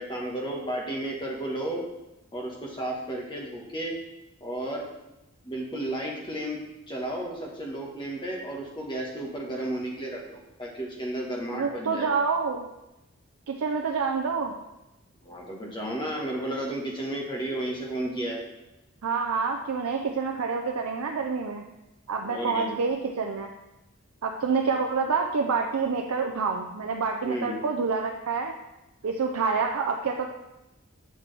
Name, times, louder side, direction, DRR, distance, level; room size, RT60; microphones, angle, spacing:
voice 1, 0.0-1.8 2.3-4.0 4.4-4.9 5.4-6.6 6.9-12.1 15.2-18.4 22.2-22.7 27.2-27.6, right 1 dB, 20° left, -1 dB, 1.1 m, -33 dB
voice 2, 11.5-12.7 13.5-14.5 19.0-21.6 22.1-23.5 24.2-28.5 29.0-30.3, right 5 dB, 80° right, 3 dB, 0.5 m, -27 dB
6.5 x 5.9 x 3.3 m, 0.96 s
head